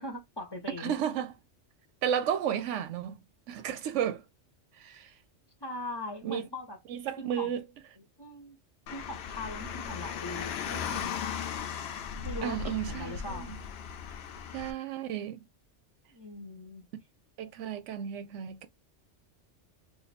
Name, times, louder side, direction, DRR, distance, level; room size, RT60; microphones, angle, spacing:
voice 1, 0.0-0.9 5.6-6.8 7.2-7.5 8.2-8.6 8.9-11.4 12.2-13.5 16.1-16.9, left 2 dB, 25° left, 0.6 m, -40 dB
voice 2, 0.8-1.3 2.0-3.2 3.5-4.2 4.8-5.1 6.2-6.5 6.9-7.6 12.4-13.6 14.5-15.4 17.4-18.7, right 9 dB, 90° right, 0.9 m, -33 dB
Car, 8.9-14.7, left 7 dB, 65° left, 0.8 m, -37 dB
2.6 x 2.5 x 4.1 m
omnidirectional pair, 1.2 m